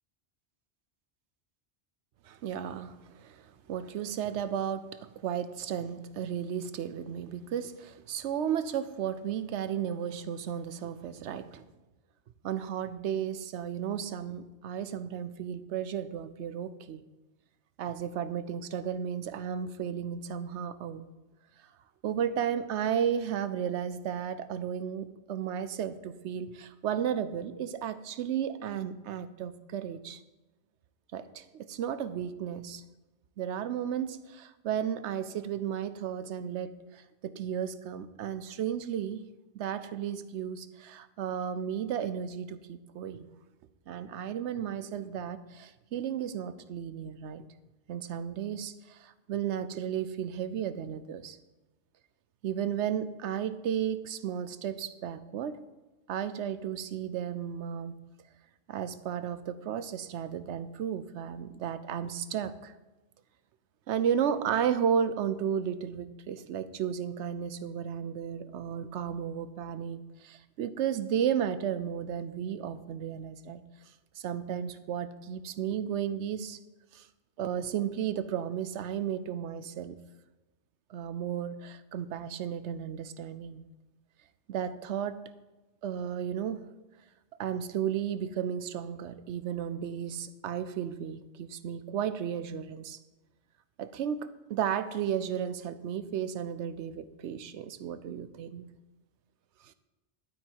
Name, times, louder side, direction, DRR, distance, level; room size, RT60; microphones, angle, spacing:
voice 1, 2.3-11.6 12.4-17.0 17.8-21.1 22.0-30.2 31.1-32.8 33.4-39.2 39.5-43.3 43.9-47.4 47.9-51.4 52.4-55.6 56.1-57.9 58.7-62.7 63.9-73.6 74.2-76.6 76.9-77.1 77.4-80.0 80.9-83.6 84.5-85.3 85.8-86.6 87.4-93.0 93.8-98.7 99.6-99.7, right 8 dB, 85° right, 0.9 m, -34 dB
12.0 x 8.5 x 4.7 m
omnidirectional pair, 1.1 m